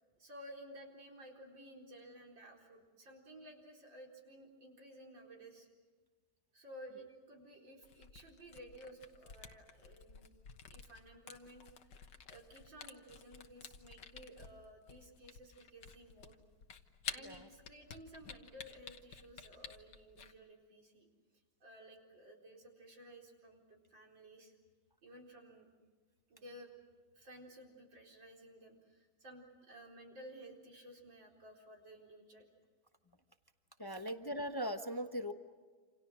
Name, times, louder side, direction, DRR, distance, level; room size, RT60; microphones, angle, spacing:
voice 1, 0.2-5.7 6.5-10.3 10.7-12.0 12.3-16.4 17.1-21.1 21.6-24.5 25.0-25.7 26.3-26.7 27.1-32.5 34.0-34.1, right 1 dB, 65° right, 0 dB, 5.0 m, -55 dB
Camera, 7.8-20.3, left 6 dB, 65° left, 1.9 m, -51 dB
voice 2, 33.8-35.3, equal, 20° left, 6 dB, 0.6 m, -39 dB
28.5 x 28.0 x 6.3 m, 1.4 s
omnidirectional pair, 2.2 m